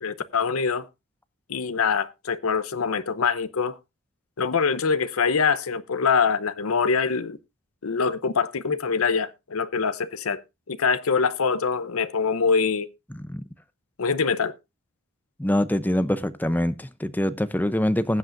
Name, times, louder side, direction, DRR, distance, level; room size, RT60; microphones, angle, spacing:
voice 1, 0.0-0.9 1.5-3.8 4.4-7.4 7.8-10.4 10.7-12.9 14.0-14.5, left 5 dB, 85° left, 0.7 m, -24 dB
voice 2, 15.4-18.2, left 1 dB, 10° left, 0.6 m, -24 dB
20.0 x 7.9 x 2.5 m
head